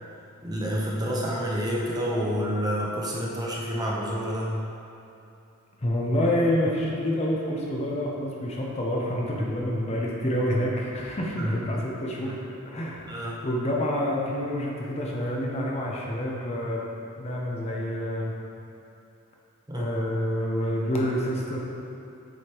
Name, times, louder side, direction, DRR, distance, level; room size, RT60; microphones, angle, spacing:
voice 1, 0.4-4.5 11.4-11.6 13.1-13.4 19.7-19.9, equal, 20° right, -4 dB, 0.8 m, -28 dB
voice 2, 5.8-12.4 12.7-16.9 17.2-18.3 19.7-21.6, equal, 30° left, -3 dB, 0.6 m, -28 dB
7.9 x 4.9 x 3.0 m, 2.8 s
head